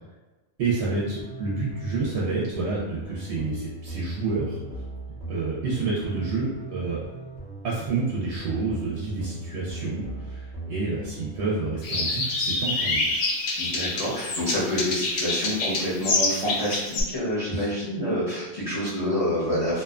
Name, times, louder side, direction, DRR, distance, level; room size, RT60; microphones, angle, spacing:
voice 1, 0.6-4.6 5.3-7.0 7.6-13.2 17.5-17.8, right 3 dB, 70° right, -5 dB, 0.8 m, -29 dB
sound 1, 0.7-11.4, right 2 dB, 5° right, 0.6 m, -39 dB
sound 2, 11.8-17.0, left 2 dB, 75° left, 0.9 m, -27 dB
voice 2, 13.6-19.8, equal, 35° left, -9 dB, 0.7 m, -27 dB
2.5 x 2.2 x 2.4 m, 1.1 s
omnidirectional pair, 1.2 m